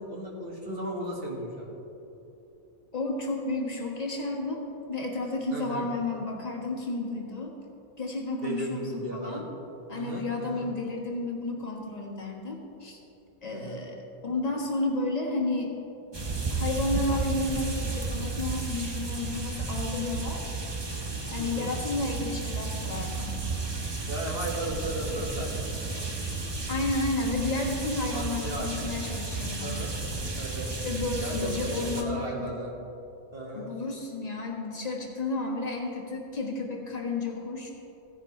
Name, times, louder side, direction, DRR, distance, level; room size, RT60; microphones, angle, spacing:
voice 1, 0.0-1.7 5.5-5.9 8.4-9.4 9.9-10.7 13.5-13.8 21.4-21.7 24.1-25.6 28.1-28.7 29.6-29.9 30.4-30.7 31.2-32.7 33.3-33.7, right 1 dB, 40° right, -2 dB, 1.7 m, -35 dB
voice 2, 2.9-7.5 8.0-9.5 9.9-13.0 13.4-15.7 16.5-20.4 21.3-23.4 26.7-29.8 30.7-32.5 33.5-37.7, left 2 dB, 30° left, -1 dB, 1.4 m, -32 dB
sound 1, 16.1-32.0, right 3 dB, 20° right, 0.8 m, -33 dB
16.0 x 10.0 x 3.2 m, 3.0 s
omnidirectional pair, 1.5 m